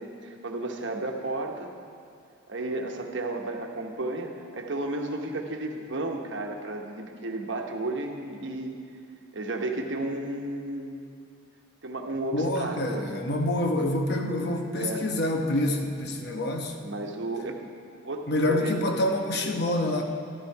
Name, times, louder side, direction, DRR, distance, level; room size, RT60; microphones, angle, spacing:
voice 1, 0.0-1.7 2.5-8.8 9.3-11.0 11.8-13.2 14.2-15.0 16.8-17.6 18.0-18.8, right 2 dB, 65° right, 3 dB, 1.1 m, -33 dB
voice 2, 12.3-16.7 18.3-20.0, left 1 dB, 55° left, 3 dB, 1.1 m, -27 dB
13.0 x 12.0 x 4.8 m, 2.4 s
head